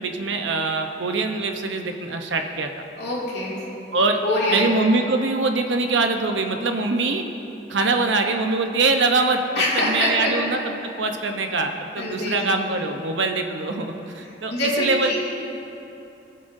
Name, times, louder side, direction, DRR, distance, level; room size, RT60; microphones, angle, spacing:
voice 1, 0.0-2.8 3.9-4.2 4.5-7.3 7.7-9.4 9.8-10.6 11.0-15.2, right 3 dB, 90° right, 5 dB, 0.8 m, -23 dB
voice 2, 3.0-3.6 4.2-4.7 9.6-10.3 12.0-12.5 14.2-15.2, left 1 dB, 60° left, -6 dB, 2.6 m, -24 dB
19.5 x 7.5 x 2.7 m, 2.9 s
head